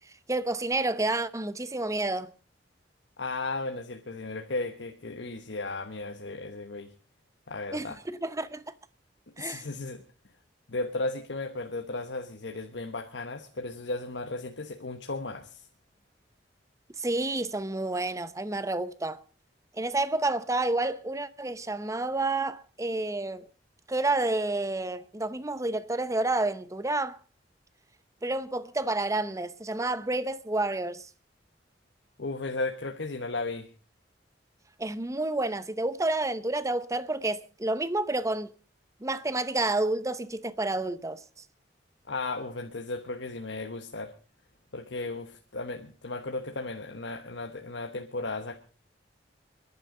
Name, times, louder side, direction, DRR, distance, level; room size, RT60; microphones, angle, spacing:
voice 1, 0.3-2.3 7.7-8.6 9.4-9.6 17.0-19.2 19.7-23.5 23.9-27.2 28.2-31.0 34.8-38.5 39.0-41.2, right 2 dB, 20° right, 0.8 m, -29 dB
voice 2, 3.2-6.9 7.5-8.0 9.4-10.0 10.7-15.7 32.2-33.7 42.1-44.1 44.7-48.6, left 2 dB, 80° left, 1.2 m, -35 dB
28.5 x 11.0 x 3.8 m
head